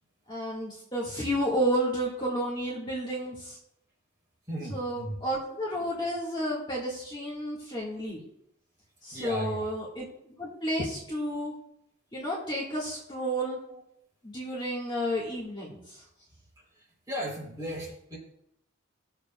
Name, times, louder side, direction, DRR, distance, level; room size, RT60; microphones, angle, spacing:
voice 1, 0.3-3.6 4.7-8.2 9.0-10.8 11.1-11.5 12.1-13.6 14.2-16.0, equal, 25° left, -5 dB, 1.8 m, -31 dB
voice 2, 4.5-5.2 9.1-9.6 10.8-10.9 13.7-13.8 16.7-18.2, equal, 20° right, -4 dB, 3.7 m, -36 dB
19.5 x 6.8 x 2.4 m, 0.76 s
head